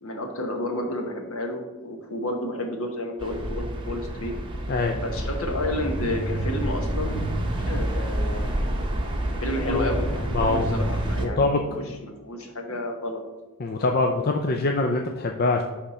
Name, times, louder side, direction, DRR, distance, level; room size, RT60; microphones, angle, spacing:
voice 1, 0.0-4.3 5.0-7.2 7.6-8.4 9.4-11.7 12.0-13.2, left 1 dB, 65° left, 4 dB, 1.2 m, -31 dB
sound 1, 3.2-11.3, right 1 dB, 20° right, 0.9 m, -28 dB
voice 2, 4.7-5.0 9.7-9.9 10.3-10.9 11.2-11.9 13.6-15.6, left 3 dB, 45° left, 3 dB, 0.5 m, -24 dB
10.5 x 3.6 x 4.2 m, 1.2 s
head